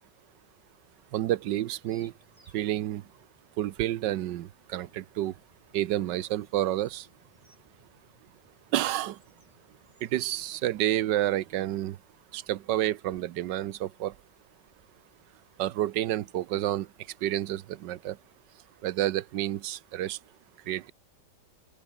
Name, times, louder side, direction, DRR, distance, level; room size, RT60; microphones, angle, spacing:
sound 1, 1.0-11.8, right 1 dB, 20° right, 6.6 m, -63 dB
voice 1, 1.1-2.1 2.5-3.0 3.6-5.3 5.7-7.0 8.7-9.2 10.0-12.0 12.3-14.1 15.6-16.9 17.2-18.2 18.8-20.2 20.7-20.9, right 13 dB, 75° right, 1.4 m, -29 dB
open air
omnidirectional pair, 2.0 m